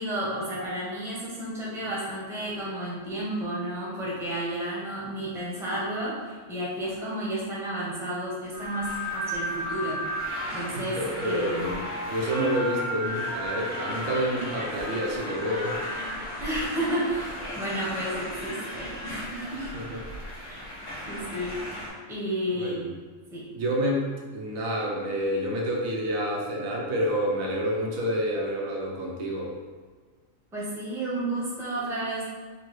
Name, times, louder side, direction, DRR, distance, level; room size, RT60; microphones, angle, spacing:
voice 1, 0.0-10.0 10.5-11.0 11.2-11.8 16.4-19.7 20.5-20.7 21.1-21.6 22.1-22.8 23.3-23.4 30.5-32.2, right 1 dB, 5° right, -6 dB, 0.6 m, -32 dB
sound 1, 8.5-21.9, equal, 40° left, 1.0 m, -34 dB
voice 2, 10.7-15.8 19.7-20.0 22.6-22.9 23.5-29.5, equal, 90° right, -1 dB, 1.1 m, -28 dB
3.7 x 2.3 x 3.0 m, 1.5 s
omnidirectional pair, 1.4 m